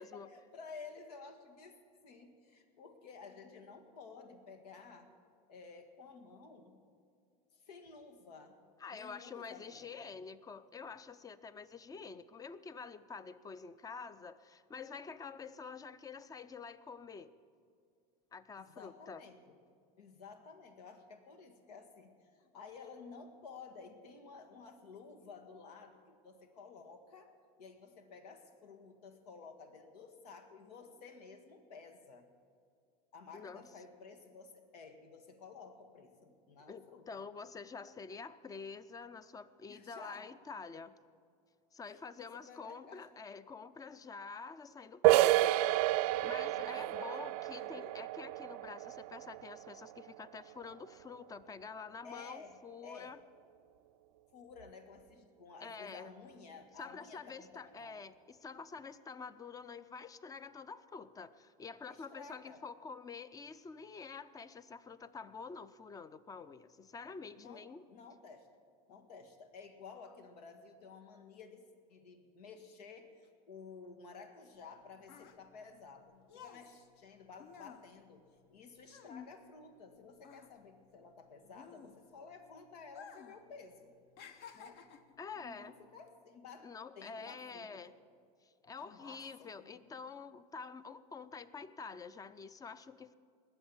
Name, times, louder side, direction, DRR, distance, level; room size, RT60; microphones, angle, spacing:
voice 1, 0.0-1.8 2.0-5.1 5.5-6.8 7.5-10.2 18.6-19.6 20.0-27.3 27.6-32.3 33.1-37.2 39.7-40.3 41.8-43.1 46.6-48.0 52.0-53.2 54.3-58.1 61.9-62.6 67.4-67.6 67.9-68.5 68.9-78.3 78.5-83.9 84.5-84.8 85.4-88.0 88.8-89.9, left 5 dB, 90° left, 6 dB, 1.7 m, -53 dB
voice 2, 8.8-17.3 18.3-19.2 33.3-33.7 36.7-40.9 41.7-45.7 46.2-53.2 55.6-56.1 56.8-67.8 85.2-85.7 86.6-87.9 88.4-93.2, left 5 dB, 20° left, 15 dB, 0.5 m, -48 dB
sound 1, 45.0-50.5, right 17 dB, 70° right, 0.4 m, -31 dB
sound 2, 74.6-79.9 80.2-82.3 82.9-83.4 83.7-85.2 85.9-86.1, left 7 dB, 55° left, 1.1 m, -54 dB
20.0 x 7.9 x 7.2 m, 2.3 s
supercardioid pair, 120°, 20 cm